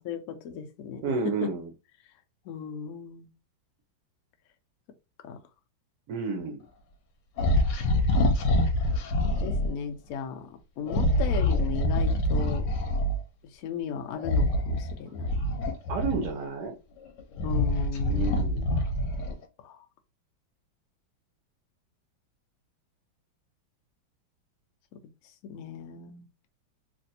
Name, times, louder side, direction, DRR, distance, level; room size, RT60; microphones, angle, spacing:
voice 1, 0.0-1.5 2.5-3.3 5.2-5.4 9.4-12.7 13.5-15.4 17.4-18.6 19.3-19.8 25.4-26.2, left 6 dB, 85° left, 0.8 m, -36 dB
voice 2, 1.0-1.7 6.1-6.6 15.9-16.8 18.1-18.6, right 4 dB, 75° right, 0.9 m, -31 dB
sound 1, 7.4-9.7 10.8-13.2 14.2-16.5 17.1-19.4, left 1 dB, 65° left, 1.2 m, -26 dB
3.3 x 2.6 x 2.7 m
omnidirectional pair, 2.2 m